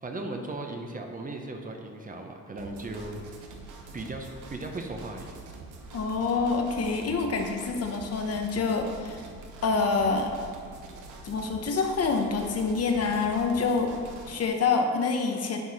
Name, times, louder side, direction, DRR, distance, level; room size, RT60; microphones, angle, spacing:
voice 1, 0.0-3.5 3.9-5.3, right 2 dB, 25° right, 3 dB, 0.9 m, -37 dB
sound 1, 2.6-14.5, right 3 dB, 80° right, 1.1 m, -45 dB
voice 2, 5.9-9.2 9.6-10.4 11.2-14.0 14.3-15.6, left 4 dB, 55° left, 4 dB, 1.0 m, -26 dB
10.5 x 4.7 x 4.2 m, 2.1 s
cardioid pair, 90°, 30 cm